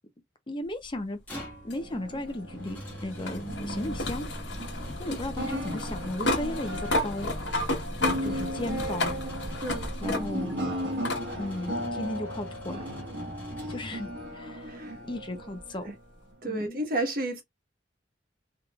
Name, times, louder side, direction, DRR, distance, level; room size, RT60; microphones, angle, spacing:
voice 1, 0.5-1.2 1.6-4.3 5.0-7.4 8.2-9.1 10.0-10.5 11.4-12.8 13.7-15.9 16.4-16.8, left 1 dB, 30° left, 0.6 m, -35 dB
sound 1, 1.0-14.4, equal, 10° left, 1.5 m, -45 dB
sound 2, 1.7-10.6 11.0-11.2 12.6-12.7 15.6-15.7, left 1 dB, 90° left, 1.2 m, -32 dB
sound 3, 1.7-16.4, equal, 80° right, 1.3 m, -37 dB
voice 2, 9.6-9.9 14.7-15.0 15.7-15.9 16.4-17.4, right 1 dB, 55° right, 1.2 m, -32 dB
3.6 x 3.0 x 2.3 m
head